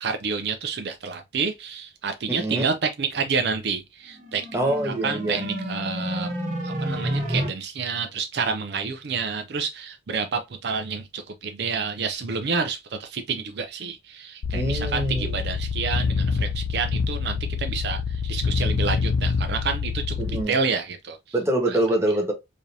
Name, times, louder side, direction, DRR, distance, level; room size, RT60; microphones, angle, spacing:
voice 1, 0.0-4.5 4.8-6.3 6.6-21.2 21.7-21.8, right 5 dB, 55° right, 0.4 m, -29 dB
voice 2, 2.3-2.6 4.5-5.4 14.5-15.4 20.2-20.5 21.3-22.3, right 1 dB, 15° right, 0.9 m, -25 dB
sound 1, 4.1-7.5, equal, 40° right, 0.9 m, -29 dB
sound 2, 14.4-20.4, left 5 dB, 80° left, 0.4 m, -26 dB
4.8 x 2.7 x 2.6 m
head